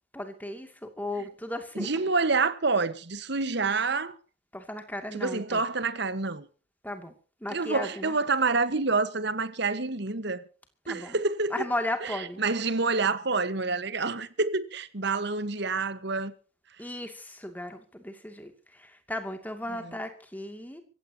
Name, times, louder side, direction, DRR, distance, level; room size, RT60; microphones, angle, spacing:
voice 1, 0.1-1.9 4.5-5.6 6.8-7.1 7.4-8.2 10.8-11.2 11.5-12.4 16.8-20.8, left 1 dB, 10° left, 2.5 m, -35 dB
voice 2, 1.8-4.2 5.1-6.5 7.5-10.4 10.9-11.5 12.0-16.3 19.8-19.9, right 3 dB, 55° right, 1.4 m, -28 dB
25.0 x 15.5 x 2.9 m
head